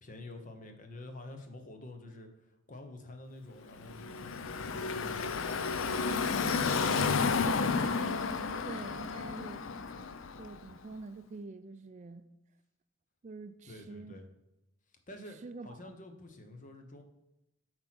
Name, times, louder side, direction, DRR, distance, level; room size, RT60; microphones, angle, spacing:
voice 1, 0.0-7.3 13.6-14.2 15.1-17.0, left 1 dB, 40° left, 1.0 m, -49 dB
Car passing by / Traffic noise roadway noise, 3.8-10.7, left 5 dB, 75° left, 0.5 m, -32 dB
voice 2, 8.6-9.6 10.4-12.3 13.2-14.2 15.4-16.0, right 3 dB, 35° right, 0.4 m, -46 dB
8.2 x 4.4 x 6.1 m
head